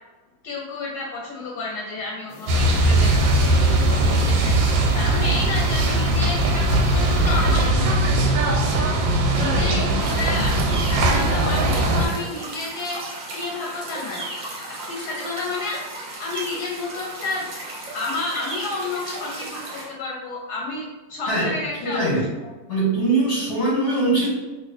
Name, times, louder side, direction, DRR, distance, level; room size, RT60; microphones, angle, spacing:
voice 1, 0.4-8.1 9.3-13.0 13.3-14.3 14.9-15.8 16.2-17.5 17.9-22.3, left 3 dB, 70° left, -2 dB, 1.0 m, -31 dB
sound 1, 2.3-7.7, left 3 dB, 90° left, 1.3 m, -38 dB
sound 2, 2.5-12.1, right 1 dB, 85° right, 1.3 m, -19 dB
sound 3, 10.0-19.9, right 2 dB, 55° right, 1.0 m, -35 dB
voice 2, 21.8-22.3 22.7-24.3, right 2 dB, 45° left, -7 dB, 0.9 m, -21 dB
3.1 x 2.4 x 3.2 m, 1.2 s
omnidirectional pair, 2.0 m